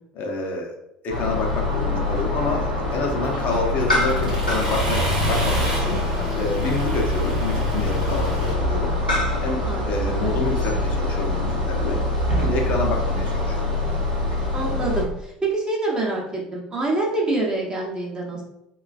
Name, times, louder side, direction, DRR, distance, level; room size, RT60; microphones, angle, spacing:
voice 1, 0.1-0.7 1.0-6.0 6.3-8.9 9.4-12.0 12.3-13.7, left 3 dB, 45° left, 1 dB, 0.6 m, -28 dB
sound 1, 1.1-15.0, left 2 dB, 90° left, 0.7 m, -24 dB
Accelerating revving vroom, 3.2-8.5, right 1 dB, 80° right, 0.8 m, -29 dB
voice 2, 9.7-10.4 14.5-18.4, right 2 dB, 20° right, -2 dB, 0.7 m, -26 dB
3.1 x 2.3 x 2.3 m, 0.81 s
figure-of-eight pair, 65°, 4 cm